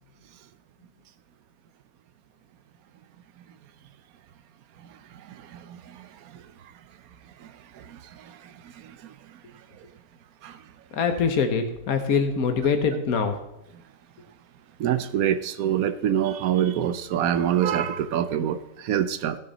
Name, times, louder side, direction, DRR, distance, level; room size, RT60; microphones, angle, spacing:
voice 1, 5.3-6.1 6.3-6.4 7.4-7.5 7.7-9.1 10.4-10.6 14.8-19.4, right 10 dB, 90° right, 1.2 m, -26 dB
voice 2, 10.9-13.3, left 5 dB, 90° left, 1.5 m, -23 dB
15.5 x 6.7 x 4.0 m
omnidirectional pair, 1.5 m